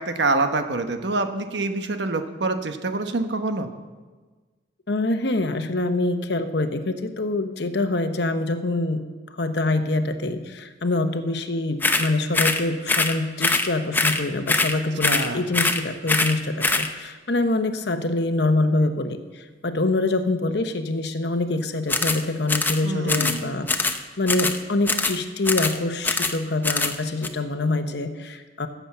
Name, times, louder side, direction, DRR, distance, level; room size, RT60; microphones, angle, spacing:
voice 1, 0.0-3.7 15.0-15.5 22.8-23.5, right 3 dB, 70° right, 7 dB, 1.1 m, -26 dB
voice 2, 4.9-9.0 9.3-28.7, left 2 dB, 65° left, 8 dB, 0.9 m, -25 dB
sound 1, 11.8-12.1 12.3-12.6 12.9-13.1 13.4-13.7 13.9-14.2 14.5-14.7 15.0-15.3 15.5-15.8 16.1-16.3 16.6-16.9 21.9-22.2 22.5-22.8 23.1-23.4 23.7-24.0 24.3-24.6 24.9-25.2 25.4-25.8 26.0-26.4 26.6-26.9 27.2-27.3, left 3 dB, 10° left, 0.7 m, -22 dB
16.0 x 7.2 x 7.1 m, 1.3 s
head